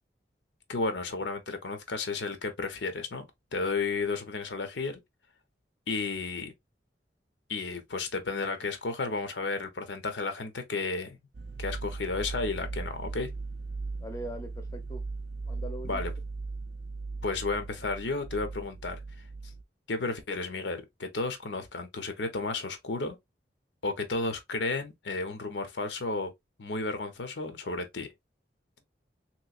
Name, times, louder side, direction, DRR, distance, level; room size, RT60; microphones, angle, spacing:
voice 1, 0.7-3.3 3.5-5.0 5.9-6.5 7.5-11.2 11.6-13.3 15.8-16.1 17.2-19.0 19.9-23.2 23.8-26.3 26.6-28.1, left 3 dB, 85° left, 0.7 m, -32 dB
sound 1, 11.3-19.6, right 3 dB, 70° right, 0.4 m, -38 dB
voice 2, 14.0-15.0 15.5-16.0, right 1 dB, 20° left, 0.5 m, -41 dB
3.1 x 3.0 x 2.4 m
head